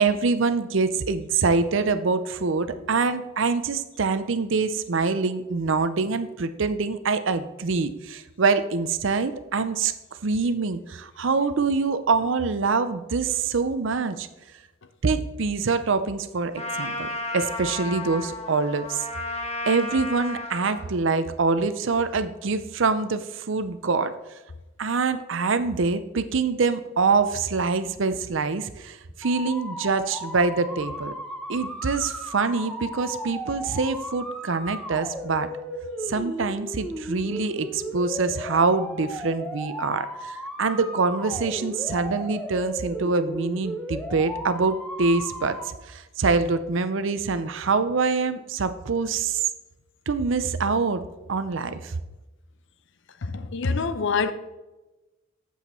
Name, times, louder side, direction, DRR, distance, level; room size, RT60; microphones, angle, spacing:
voice 1, 0.0-9.9 10.2-14.3 15.0-17.1 17.3-19.0 19.7-24.1 24.8-31.1 31.5-35.5 36.1-49.4 50.1-51.0 51.3-51.9, right 4 dB, 65° right, 0.6 m, -25 dB
Trumpet, 16.6-20.9, left 2 dB, 30° left, 1.3 m, -33 dB
sound 1, 29.2-45.7, equal, 5° left, 1.0 m, -35 dB
voice 2, 53.2-54.3, left 4 dB, 60° left, 0.6 m, -25 dB
8.4 x 7.3 x 4.3 m
head